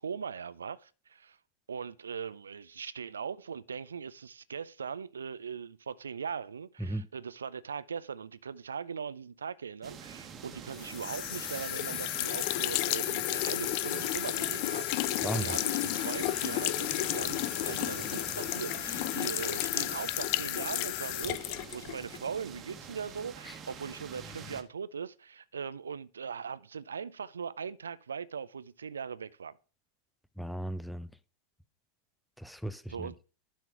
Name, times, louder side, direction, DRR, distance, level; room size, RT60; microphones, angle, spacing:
voice 1, 0.0-1.4 1.7-29.6 32.9-33.2, right 6 dB, 70° right, 0.4 m, -40 dB
sound 1, 9.8-24.6, right 7 dB, 30° right, 1.3 m, -46 dB
sound 2, 10.8-22.2, left 17 dB, 45° left, 0.5 m, -32 dB
voice 2, 15.2-15.6 23.5-23.6 30.4-31.1 32.4-33.1, right 1 dB, ahead, 0.6 m, -36 dB
11.5 x 4.5 x 5.8 m
figure-of-eight pair, 90°, 0 cm